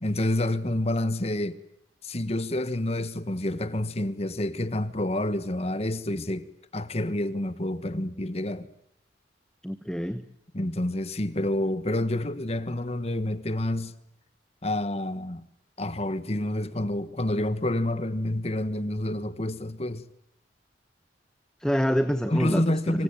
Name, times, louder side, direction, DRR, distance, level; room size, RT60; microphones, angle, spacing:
voice 1, 0.0-1.6 2.0-6.5 6.7-8.7 10.5-13.9 14.6-15.5 15.8-20.0 22.3-23.0, left 1 dB, 35° left, 1.4 m, -28 dB
voice 2, 9.6-10.2 21.6-23.0, equal, 5° left, 1.0 m, -27 dB
26.0 x 24.5 x 9.0 m
head